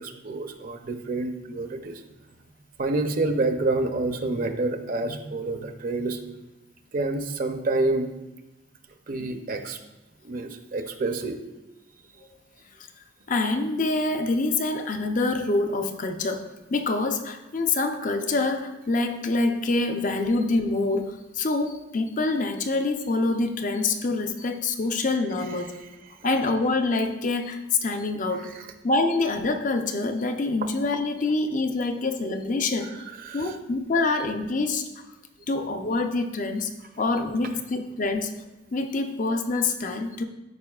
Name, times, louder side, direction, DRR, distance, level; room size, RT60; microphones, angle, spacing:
voice 1, 0.0-2.0 2.8-6.2 6.9-8.1 9.1-9.8 10.2-11.4 28.4-28.5 33.2-33.6, right 2 dB, 45° right, 6 dB, 0.6 m, -28 dB
voice 2, 13.3-25.8 26.2-33.1 33.3-34.9 35.5-36.7 37.0-38.4 38.7-40.2, left 3 dB, 40° left, 6 dB, 0.6 m, -26 dB
13.5 x 5.2 x 2.4 m, 1.0 s
head